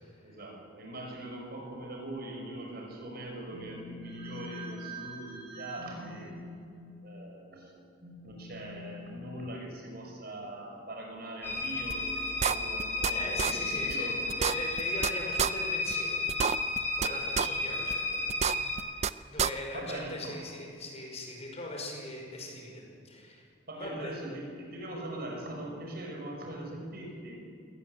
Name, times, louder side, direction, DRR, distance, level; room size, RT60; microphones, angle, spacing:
voice 1, 0.2-6.6 7.0-14.3 17.0-17.2 17.7-17.8 18.1-18.3 19.3-20.4 23.7-27.4, right 1 dB, 50° right, 1 dB, 6.0 m, -41 dB
sound 1, 11.4-18.8, left 2 dB, 10° left, 7.5 m, -33 dB
sound 2, 11.9-12.0 12.4-13.1 13.4-13.5 13.9-14.0 14.3-15.1 15.4-15.5 15.9-16.0 16.3-17.1 17.4-17.5 17.9-18.0 18.3-19.1 19.4-19.5, right 7 dB, 35° right, 0.5 m, -28 dB
voice 2, 13.1-14.1 14.4-16.2 16.9-18.0 18.7-23.5 23.7-24.1, left 1 dB, 35° left, 1 dB, 5.1 m, -40 dB
22.5 x 18.0 x 8.2 m, 2.4 s
head